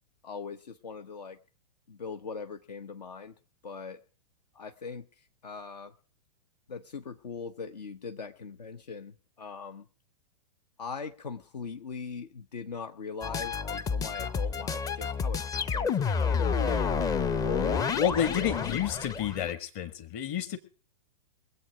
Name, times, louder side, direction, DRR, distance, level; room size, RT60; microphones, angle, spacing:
voice 1, 0.2-1.4 1.9-3.3 3.6-4.0 4.5-5.9 6.7-9.9 10.8-16.9 17.4-18.8, left 5 dB, 75° left, 8 dB, 0.9 m, -40 dB
sound 1, 13.2-19.5, left 5 dB, 15° left, 0.5 m, -29 dB
voice 2, 17.9-20.6, left 9 dB, 40° left, 11 dB, 1.7 m, -30 dB
23.0 x 7.9 x 4.8 m, 0.39 s
figure-of-eight pair, 105°, 21 cm